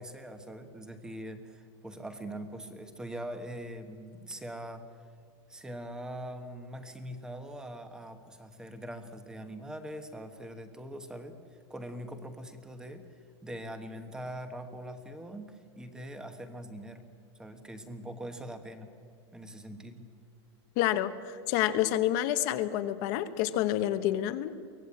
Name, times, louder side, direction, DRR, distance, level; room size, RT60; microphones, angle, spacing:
voice 1, 0.0-4.8 5.5-13.1 13.4-17.0 17.3-18.9 19.3-20.0, right 1 dB, 5° right, 8 dB, 1.3 m, -42 dB
voice 2, 20.8-24.5, left 12 dB, 40° left, 10 dB, 1.1 m, -28 dB
24.0 x 18.0 x 8.7 m, 2.1 s
supercardioid pair, 180°, 14 cm